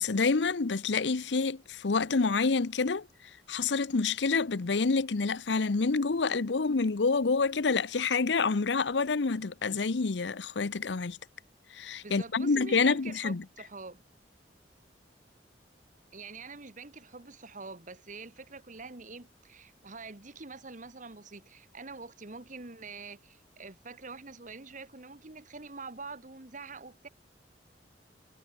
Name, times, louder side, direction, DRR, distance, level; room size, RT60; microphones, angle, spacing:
voice 1, 0.0-3.1 3.5-11.2 11.7-13.4, left 4 dB, 75° left, 0.7 m, -28 dB
voice 2, 12.0-14.0 16.1-27.1, right 4 dB, 45° right, 1.9 m, -45 dB
head